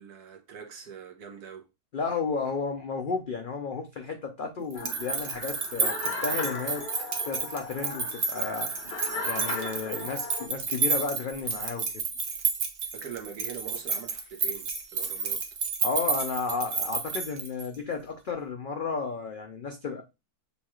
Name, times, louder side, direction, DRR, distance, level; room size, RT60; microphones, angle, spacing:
voice 1, 0.0-1.7 4.8-4.9 12.9-15.4, right 8 dB, 75° right, 1.4 m, -43 dB
voice 2, 1.9-6.9 7.2-8.7 9.2-11.9 15.8-20.0, left 5 dB, 80° left, 0.4 m, -33 dB
sound 1, 4.7-10.5, left 3 dB, 45° left, 1.1 m, -37 dB
sound 2, 4.7-17.8, right 5 dB, 50° right, 0.6 m, -31 dB
6.8 x 2.4 x 3.0 m
omnidirectional pair, 1.7 m